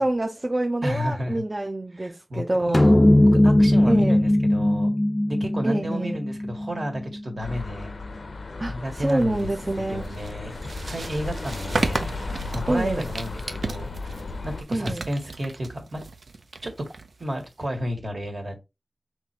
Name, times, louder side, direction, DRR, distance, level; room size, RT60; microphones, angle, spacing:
voice 1, 0.0-2.8 3.9-4.2 5.6-6.2 8.6-10.1 12.7-13.1 14.7-15.1, right 1 dB, 35° right, 0.5 m, -26 dB
voice 2, 0.8-1.4 1.9-3.0 3.3-4.9 5.3-7.9 8.7-9.5 9.8-10.5 10.9-12.0 12.5-16.0 16.6-16.8 17.2-18.6, equal, 60° right, 1.6 m, -32 dB
sound 1, 2.7-7.4, left 1 dB, 25° left, 0.4 m, -19 dB
sound 2, 7.4-14.6, left 3 dB, 75° left, 0.6 m, -35 dB
sound 3, 9.0-17.7, right 3 dB, 80° right, 0.5 m, -34 dB
5.7 x 3.2 x 2.9 m
wide cardioid pair, 75°, 0 cm